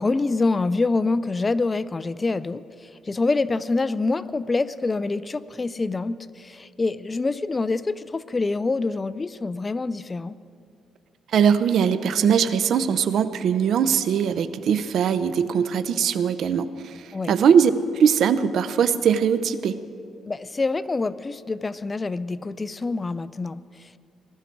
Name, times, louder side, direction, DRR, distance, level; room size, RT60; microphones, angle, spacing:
voice 1, 0.0-10.4 17.1-17.4 20.3-24.0, left 3 dB, 25° left, 17 dB, 0.4 m, -26 dB
voice 2, 11.3-19.8, right 7 dB, 65° right, 13 dB, 0.6 m, -21 dB
20.0 x 12.5 x 4.6 m, 2.5 s
cardioid pair, 90°, 0 cm